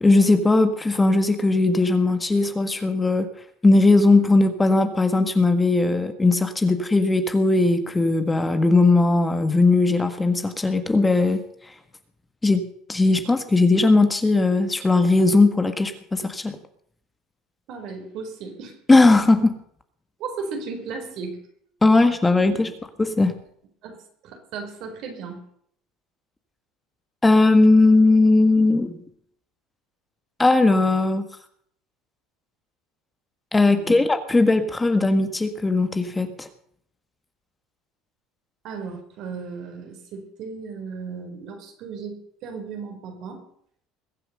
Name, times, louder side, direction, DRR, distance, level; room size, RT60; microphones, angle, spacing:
voice 1, 0.0-3.3 3.6-11.4 12.4-12.6 12.9-16.6 18.9-19.6 21.8-22.7 23.0-23.3 27.2-29.0 30.4-31.3 33.5-36.5, left 2 dB, 15° left, 9 dB, 1.5 m, -18 dB
voice 2, 17.7-18.8 20.2-21.4 23.8-25.4 33.7-34.0 38.6-43.4, right 5 dB, 60° right, 4 dB, 4.6 m, -35 dB
21.5 x 7.7 x 6.7 m, 0.67 s
supercardioid pair, 100°, 0 cm